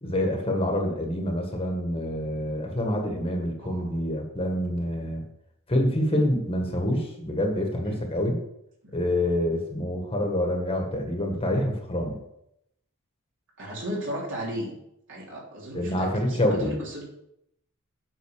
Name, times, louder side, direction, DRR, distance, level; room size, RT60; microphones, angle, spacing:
voice 1, 0.0-5.2 5.7-8.4 8.9-12.2 15.7-16.8, left 1 dB, 25° left, 2 dB, 1.6 m, -26 dB
voice 2, 13.6-14.7 15.1-17.0, equal, 60° right, -3 dB, 3.4 m, -35 dB
8.9 x 5.8 x 6.5 m, 0.79 s
head